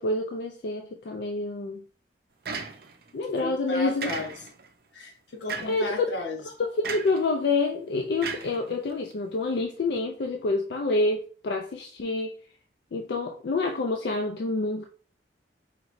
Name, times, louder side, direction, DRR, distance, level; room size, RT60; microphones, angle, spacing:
voice 1, 0.0-1.8 3.1-4.1 5.7-6.1 6.6-12.3 12.9-14.9, left 3 dB, 65° left, 0.4 m, -27 dB
sound 1, 2.5-3.1 4.0-4.7 5.5-5.9 6.8-7.3 8.2-9.1, right 5 dB, 55° right, 0.5 m, -35 dB
voice 2, 3.4-4.3 4.9-6.4, left 2 dB, 85° left, 1.0 m, -34 dB
4.9 x 3.0 x 2.5 m
head